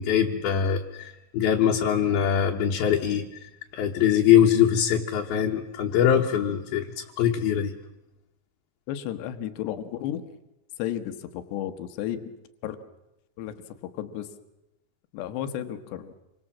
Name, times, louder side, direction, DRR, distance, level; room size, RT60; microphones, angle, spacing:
voice 1, 0.0-3.3 3.7-7.7, left 9 dB, 70° left, 0 dB, 2.9 m, -22 dB
voice 2, 8.9-10.2 10.8-12.2 12.6-12.8 13.4-13.5 14.0-14.3 15.1-16.1, left 11 dB, 85° left, 9 dB, 3.5 m, -32 dB
27.5 x 24.5 x 7.3 m, 0.90 s
omnidirectional pair, 4.8 m